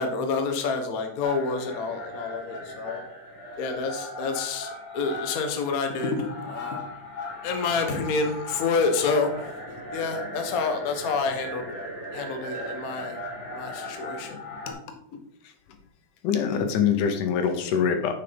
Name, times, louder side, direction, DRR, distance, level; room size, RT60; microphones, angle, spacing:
voice 1, 0.0-3.0 3.6-4.7 4.9-6.9 7.4-11.6 12.1-13.2 13.5-14.4 14.7-14.8 15.1-15.2, left 4 dB, 75° left, 5 dB, 0.8 m, -28 dB
sound 1, 1.2-14.7, left 1 dB, 40° left, 4.3 m, -38 dB
voice 2, 16.2-18.1, left 7 dB, 90° left, 7 dB, 2.7 m, -24 dB
6.7 x 6.7 x 5.2 m, 0.71 s
omnidirectional pair, 3.5 m